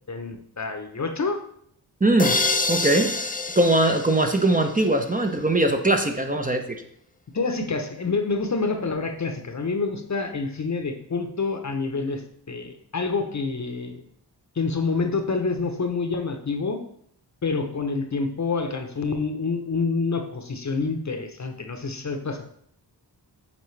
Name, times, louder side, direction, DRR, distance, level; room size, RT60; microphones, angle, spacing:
voice 1, 0.1-1.4 7.3-12.2 12.5-14.0 14.6-16.8 17.4-22.5, left 4 dB, 40° left, 6 dB, 0.9 m, -27 dB
voice 2, 2.0-2.4 2.7-6.8, right 1 dB, 20° right, 4 dB, 0.8 m, -21 dB
sound 1, 2.2-5.0, left 3 dB, 20° left, 0.5 m, -27 dB
8.4 x 3.7 x 3.3 m, 0.67 s
cardioid pair, 50°, 42 cm